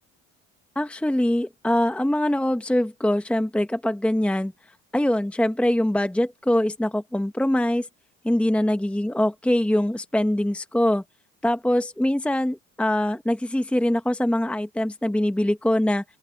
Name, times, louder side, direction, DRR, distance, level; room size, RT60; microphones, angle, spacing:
voice 1, 0.7-4.5 4.9-7.9 8.2-11.0 11.4-16.0, left 1 dB, 5° left, 1.1 m, -23 dB
open air
supercardioid pair, 90°, 30 cm